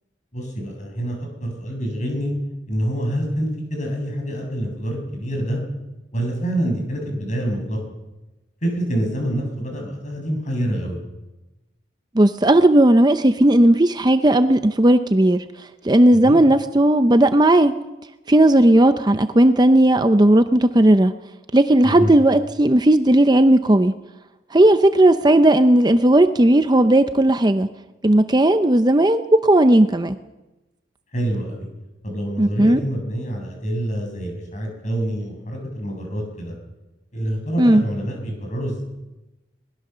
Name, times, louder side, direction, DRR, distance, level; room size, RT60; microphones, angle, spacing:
voice 1, 0.3-2.3 2.7-5.6 6.1-7.8 8.6-11.0 16.1-16.4 21.8-22.1 31.1-31.7 32.0-36.5 37.1-38.8, right 1 dB, 40° left, 2 dB, 7.0 m, -26 dB
voice 2, 12.1-15.4 15.8-17.7 18.3-21.1 21.5-23.9 24.5-27.7 28.0-30.2 32.4-32.8 37.6-37.8, right 1 dB, 20° right, 10 dB, 0.7 m, -15 dB
22.0 x 20.0 x 6.8 m, 1.1 s
head